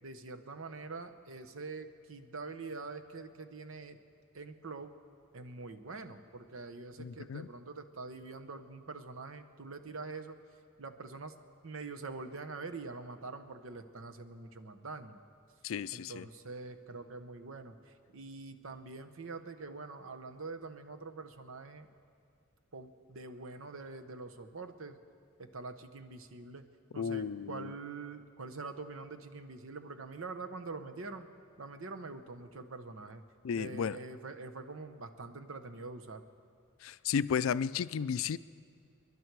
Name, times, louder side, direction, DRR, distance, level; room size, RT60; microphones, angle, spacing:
voice 1, 0.0-4.0 4.3-4.9 5.3-10.4 10.8-11.3 11.6-15.2 15.9-21.9 22.7-25.0 25.4-26.6 26.9-31.3 31.6-33.2 33.6-36.2, right 3 dB, 70° right, 9 dB, 0.9 m, -45 dB
voice 2, 7.0-7.5 15.6-16.3 27.0-27.7 33.4-34.0 36.8-38.4, left 7 dB, 75° left, 16 dB, 0.4 m, -33 dB
28.0 x 11.0 x 4.7 m, 2.3 s
head